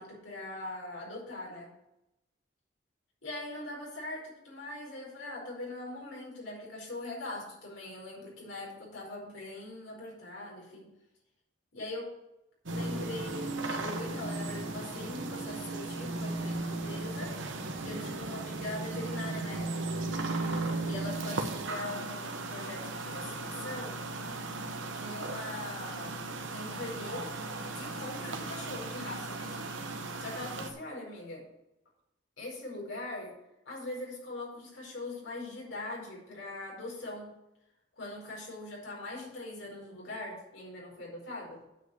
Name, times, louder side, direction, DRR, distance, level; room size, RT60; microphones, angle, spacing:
voice 1, 0.0-1.7 3.2-10.9 11.7-12.1 12.7-17.4 17.8-20.1 20.8-24.0 24.9-26.2 26.5-27.3 27.7-29.7 30.2-31.5 32.4-33.3 33.6-37.3 38.0-41.7, left 2 dB, 85° left, -3 dB, 4.6 m, -41 dB
sound 1, 12.7-30.7, right 2 dB, 85° right, 1.1 m, -36 dB
8.9 x 5.4 x 7.9 m, 0.91 s
head